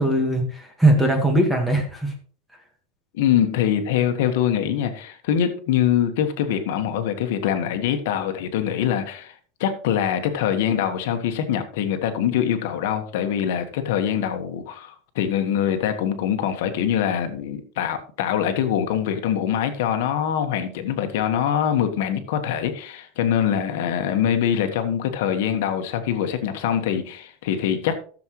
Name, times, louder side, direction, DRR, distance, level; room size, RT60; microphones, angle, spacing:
voice 1, 0.0-2.1, right 1 dB, 5° right, 3 dB, 1.6 m, -20 dB
voice 2, 3.1-28.0, left 9 dB, 70° left, 7 dB, 1.4 m, -24 dB
15.0 x 7.2 x 3.1 m, 0.44 s
supercardioid pair, 170°, 0 cm